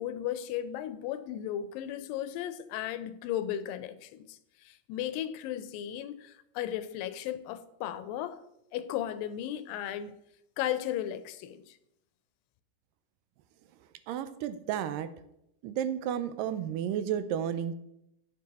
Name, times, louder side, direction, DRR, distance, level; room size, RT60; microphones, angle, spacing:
voice 1, 0.0-8.4 8.7-10.1 10.6-11.8, left 11 dB, 85° left, 2.3 m, -35 dB
voice 2, 14.1-15.1 15.6-17.7, right 9 dB, 80° right, 2.1 m, -32 dB
9.5 x 6.6 x 4.1 m
omnidirectional pair, 4.0 m